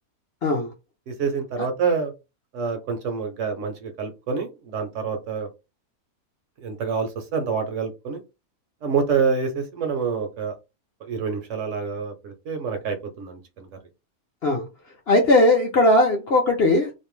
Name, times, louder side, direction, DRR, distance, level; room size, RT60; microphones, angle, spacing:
voice 1, 1.1-2.1 2.5-5.5 6.6-8.2 8.8-10.5 11.0-13.7, right 5 dB, 70° right, 0.8 m, -27 dB
voice 2, 15.1-16.9, left 1 dB, 60° left, 0.7 m, -18 dB
2.6 x 2.1 x 3.0 m
omnidirectional pair, 1.5 m